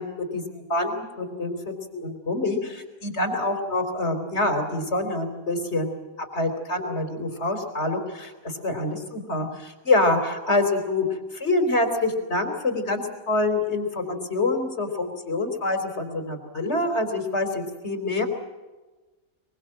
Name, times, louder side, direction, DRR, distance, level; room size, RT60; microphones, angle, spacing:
voice 1, 0.0-6.0 6.3-11.1 11.3-18.3, left 2 dB, 50° left, 6 dB, 4.1 m, -26 dB
23.5 x 23.5 x 7.7 m, 1.2 s
omnidirectional pair, 1.4 m